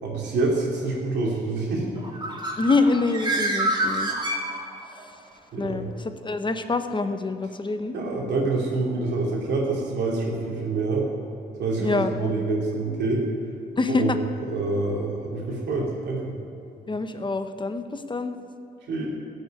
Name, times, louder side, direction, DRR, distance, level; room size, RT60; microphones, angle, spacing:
voice 1, 0.0-1.9 5.5-5.8 7.9-11.1 11.6-13.2 13.9-14.1 14.5-16.3 18.9-19.1, right 3 dB, 85° right, -2 dB, 3.0 m, -26 dB
Bird, 2.0-5.0, right 1 dB, 25° right, 2.5 m, -27 dB
voice 2, 2.6-4.1 5.6-8.0 11.8-12.5 13.8-14.2 16.9-18.3, left 3 dB, 30° left, 8 dB, 0.9 m, -26 dB
14.5 x 6.7 x 9.1 m, 2.7 s
cardioid pair, 80°, 17 cm